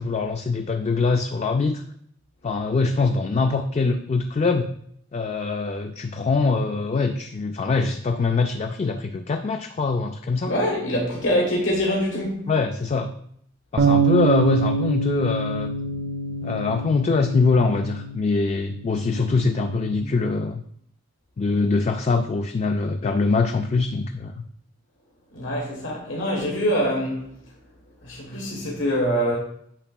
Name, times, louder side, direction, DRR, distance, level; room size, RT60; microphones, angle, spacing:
voice 1, 0.0-1.8 2.4-4.7 5.1-10.5 12.5-13.1 13.7-15.7 16.4-20.6 21.4-24.4, left 4 dB, 35° left, 0.3 m, -23 dB
voice 2, 10.4-12.5 25.3-27.2 28.0-29.4, equal, 70° left, 1.3 m, -24 dB
sound 1, 13.8-20.0, right 5 dB, 45° right, 0.5 m, -26 dB
8.8 x 5.9 x 2.3 m
head